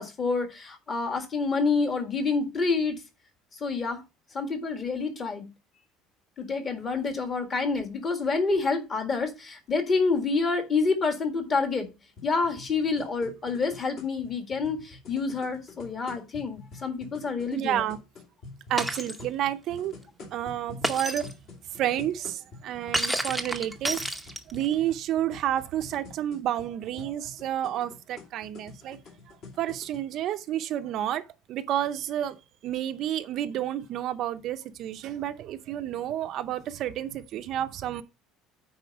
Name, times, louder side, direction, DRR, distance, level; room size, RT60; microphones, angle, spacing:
voice 1, 0.0-3.0 3.6-4.0 4.3-5.5 6.4-11.9 12.2-17.8, left 4 dB, 25° left, 1.7 m, -28 dB
sound 1, 12.2-30.0, left 3 dB, 45° left, 2.6 m, -47 dB
voice 2, 17.5-18.0 18.7-19.9 20.2-21.3 21.7-24.0 24.5-29.0 29.3-38.0, right 11 dB, 45° right, 0.6 m, -30 dB
Shatter, 18.8-19.2 20.8-21.3 22.9-24.6, right 1 dB, ahead, 0.8 m, -30 dB
9.4 x 4.3 x 4.8 m
cardioid pair, 160°, 0 cm